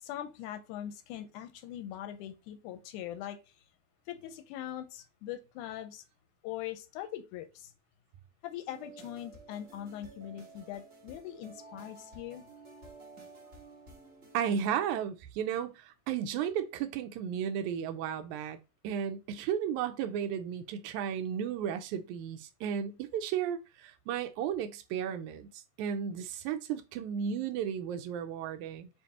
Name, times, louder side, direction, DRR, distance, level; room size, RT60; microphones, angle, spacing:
voice 1, 0.0-3.4 4.1-6.0 6.4-7.7 8.4-12.4, left 11 dB, 85° left, 2.1 m, -41 dB
sound 1, 8.7-14.6, right 3 dB, 50° right, 0.8 m, -52 dB
voice 2, 14.3-18.6 18.8-28.9, right 8 dB, 85° right, 2.0 m, -34 dB
6.8 x 2.5 x 2.8 m
omnidirectional pair, 3.4 m